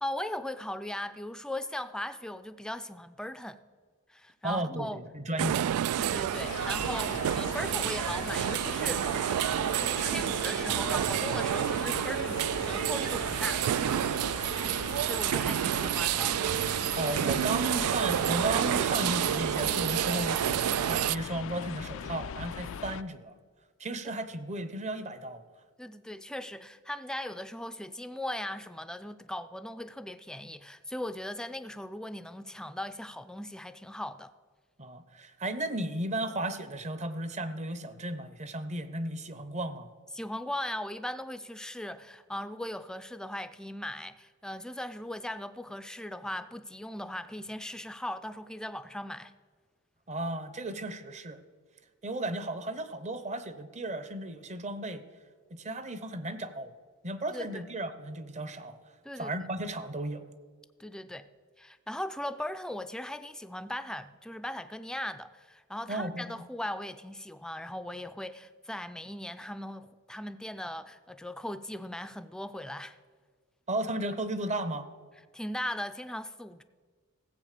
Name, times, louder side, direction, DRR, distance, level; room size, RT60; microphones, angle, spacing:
voice 1, 0.0-3.6 4.1-5.0 6.0-9.1 9.7-13.6 15.0-16.3 24.0-24.1 25.8-34.3 40.1-49.3 57.3-57.6 59.0-59.4 60.8-61.3 61.6-73.0 75.3-76.6, left 1 dB, 5° left, 0.4 m, -38 dB
voice 2, 4.4-5.7 17.0-23.3 23.8-25.4 34.8-39.9 50.1-51.4 52.0-55.0 55.5-56.8 57.0-58.8 59.2-60.3 65.9-66.4 73.7-74.9, right 1 dB, 30° right, 0.8 m, -34 dB
sound 1, 5.4-21.2, right 11 dB, 90° right, 0.3 m, -29 dB
sound 2, 6.3-23.0, left 7 dB, 65° left, 0.4 m, -40 dB
15.5 x 7.9 x 6.6 m
head